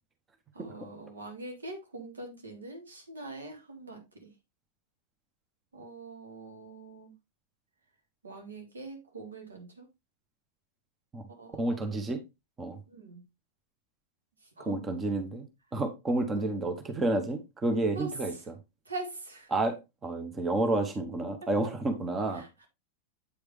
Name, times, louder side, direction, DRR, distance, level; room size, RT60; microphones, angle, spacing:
voice 1, 0.5-4.3 5.7-7.1 8.2-9.9 11.4-11.8 12.9-13.2 14.6-14.9 16.4-16.5 18.0-18.1 18.9-19.5 21.4-21.5 22.3-22.7, right 2 dB, 75° right, 1.7 m, -43 dB
voice 2, 11.6-12.2 12.6-12.8 14.7-15.4 15.7-18.5 19.5-22.4, right 2 dB, 20° right, 1.0 m, -30 dB
8.2 x 5.0 x 3.2 m
figure-of-eight pair, 90°, 0 cm